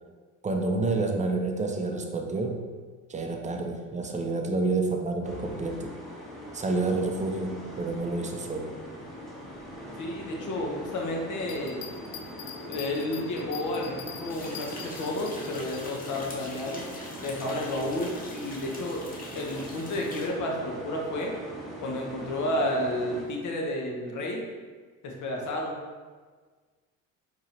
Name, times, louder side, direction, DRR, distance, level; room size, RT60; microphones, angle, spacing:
voice 1, 0.4-2.6 3.1-5.9 6.5-8.8, right 3 dB, 20° right, 3 dB, 0.6 m, -29 dB
sound 1, 5.2-23.3, equal, ahead, 1.1 m, -42 dB
voice 2, 10.0-11.8 12.6-16.8 17.2-19.0 19.3-21.3 21.8-24.5 25.0-25.8, left 1 dB, 50° left, 0 dB, 1.1 m, -31 dB
Bell, 11.4-15.8 16.3-16.4, left 9 dB, 65° left, 0.6 m, -43 dB
sound 2, 14.3-20.3, left 2 dB, 20° left, 1.0 m, -45 dB
4.5 x 3.0 x 3.2 m, 1.5 s
hypercardioid pair, 55°, 40 cm